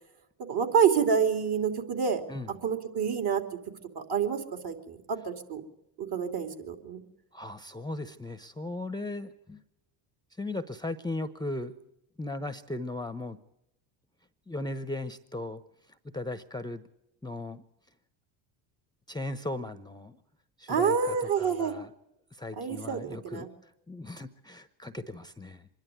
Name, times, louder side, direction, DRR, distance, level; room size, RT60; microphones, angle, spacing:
voice 1, 0.5-2.2 2.6-3.4 3.9-5.6 6.0-7.0 20.7-21.7 22.6-23.5, right 7 dB, 50° right, 6 dB, 3.1 m, -27 dB
voice 2, 7.3-9.6 10.4-11.7 12.2-13.4 14.5-15.6 16.1-16.8 17.2-17.6 19.1-20.2 20.6-21.9 22.3-25.7, left 2 dB, 10° left, 12 dB, 0.9 m, -37 dB
24.5 x 11.5 x 9.6 m, 0.83 s
supercardioid pair, 75°, 49 cm